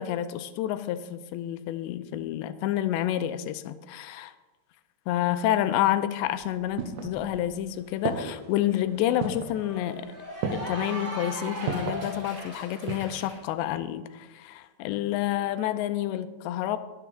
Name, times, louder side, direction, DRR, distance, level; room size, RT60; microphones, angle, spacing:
voice 1, 0.0-4.3 5.1-10.1 10.5-16.8, left 12 dB, 85° left, 11 dB, 2.9 m, -29 dB
sound 1, 6.2-7.6 8.1-8.6 9.2-9.6 10.4-10.9 11.7-12.1 12.6-13.2 13.5-13.6, right 5 dB, 90° right, 3.5 m, -33 dB
Cheering / Applause, 7.9-13.4, right 1 dB, 15° right, 3.8 m, -39 dB
21.5 x 9.4 x 3.5 m, 1.2 s
omnidirectional pair, 5.1 m